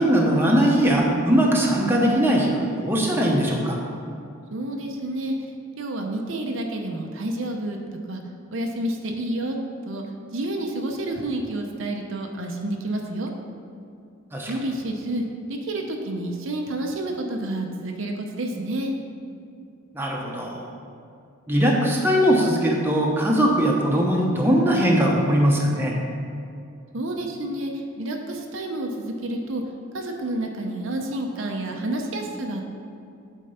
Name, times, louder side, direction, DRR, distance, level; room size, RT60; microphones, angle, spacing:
voice 1, 0.0-3.8 14.3-14.5 19.9-20.6 21.5-25.9, equal, 10° right, -2 dB, 1.0 m, -20 dB
voice 2, 4.5-5.3 5.8-7.8 8.1-8.2 8.5-9.6 9.9-13.3 14.4-15.2 15.5-18.9 26.9-27.7 28.0-29.6 29.9-32.6, right 1 dB, 65° right, 2 dB, 0.7 m, -29 dB
8.5 x 4.5 x 5.6 m, 2.4 s
head